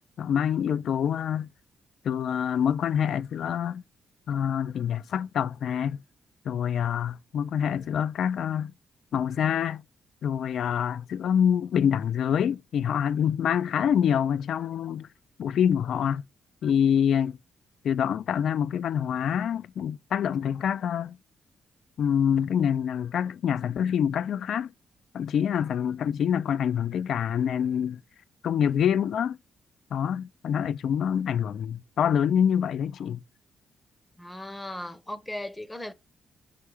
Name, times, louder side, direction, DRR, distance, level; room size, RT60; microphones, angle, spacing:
voice 1, 0.2-1.5 2.0-3.8 4.3-6.0 6.5-8.7 9.1-9.8 10.2-15.1 15.4-16.2 16.6-17.4 17.8-21.2 22.0-24.7 25.1-28.0 28.4-29.4 29.9-33.2, left 8 dB, 70° left, 0.3 m, -26 dB
voice 2, 34.2-35.9, left 1 dB, 10° left, 0.7 m, -37 dB
5.7 x 3.6 x 4.7 m
cardioid pair, 120°, 0 cm